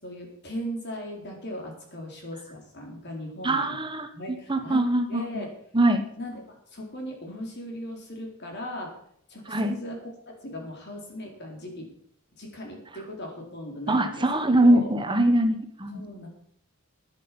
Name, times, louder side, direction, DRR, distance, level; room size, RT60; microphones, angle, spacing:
voice 1, 0.0-3.8 4.1-5.5 6.2-8.9 9.3-11.9 12.4-14.3 14.6-14.9 15.9-16.3, equal, 50° left, 0 dB, 4.2 m, -38 dB
voice 2, 3.4-4.1 4.5-5.4 5.7-6.0 9.5-9.7 13.9-16.0, right 1 dB, 20° right, 7 dB, 1.2 m, -22 dB
10.5 x 10.0 x 7.0 m, 0.68 s
head